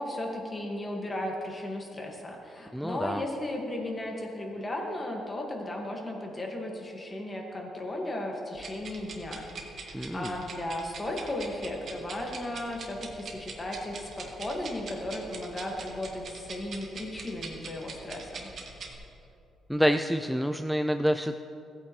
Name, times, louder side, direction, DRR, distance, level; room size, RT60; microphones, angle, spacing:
voice 1, 0.0-9.5 9.8-18.5, left 1 dB, 25° left, 0 dB, 1.8 m, -35 dB
voice 2, 2.7-3.2 9.9-10.3 19.7-21.4, equal, ahead, 8 dB, 0.3 m, -27 dB
sound 1, 8.5-18.9, right 4 dB, 55° right, 1.5 m, -44 dB
15.5 x 8.6 x 3.2 m, 2.8 s
cardioid pair, 90°, 0 cm